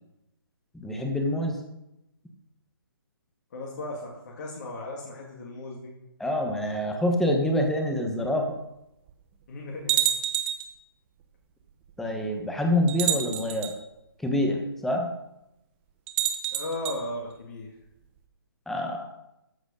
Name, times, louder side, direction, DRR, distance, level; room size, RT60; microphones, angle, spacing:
voice 1, 0.7-1.6 6.2-8.5 12.0-13.7 14.2-15.1 18.7-19.1, left 1 dB, 5° left, 2 dB, 1.3 m, -26 dB
voice 2, 3.5-5.9 9.5-10.0 16.5-17.7, left 1 dB, 45° left, -2 dB, 2.3 m, -36 dB
sound 1, 8.2-8.3 9.1-9.2 9.9-10.7 11.9-12.0 12.9-13.7 16.1-17.0, right 11 dB, 25° right, 1.1 m, -28 dB
13.5 x 4.9 x 6.6 m, 0.87 s
hypercardioid pair, 150°, 13 cm